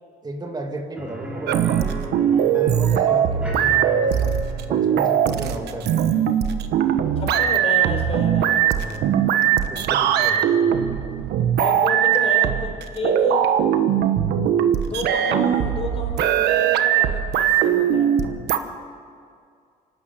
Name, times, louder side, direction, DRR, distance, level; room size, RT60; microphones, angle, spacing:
voice 1, 0.2-1.6 2.2-4.4 4.7-6.1 8.7-9.2 9.7-10.8, right 2 dB, 25° right, 2 dB, 2.4 m, -33 dB
sound 1, 1.0-10.7 11.0-11.1 13.6-13.7, left 1 dB, 5° right, 3.4 m, -38 dB
sound 2, 1.5-18.6, right 9 dB, 75° right, 1.2 m, -20 dB
voice 2, 7.2-8.9 11.6-13.5 14.8-18.1, left 2 dB, 35° left, 2 dB, 4.8 m, -31 dB
27.0 x 12.0 x 8.8 m, 2.3 s
cardioid pair, 110°, 17 cm